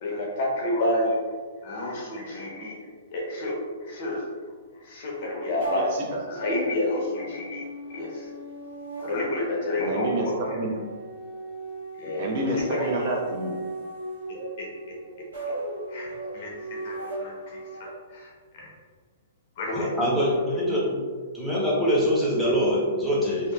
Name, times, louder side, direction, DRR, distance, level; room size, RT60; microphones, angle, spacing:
voice 1, 0.0-1.2 1.6-2.7 3.1-4.2 4.7-5.9 6.3-7.6 7.9-8.3 9.0-10.4 12.0-12.2 12.5-13.1 14.3-15.6 15.9-17.3 18.1-18.3 19.6-19.9, left 1 dB, 50° left, -2 dB, 0.7 m, -30 dB
voice 2, 5.6-6.2 9.8-10.8 12.2-13.5, right 1 dB, 50° right, -1 dB, 0.5 m, -29 dB
sound 1, 5.6-17.9, right 1 dB, 90° right, 1.3 m, -37 dB
voice 3, 19.7-21.0 21.3-23.5, equal, ahead, -7 dB, 0.7 m, -24 dB
2.7 x 2.1 x 2.2 m, 1.5 s
hypercardioid pair, 145°, 0 cm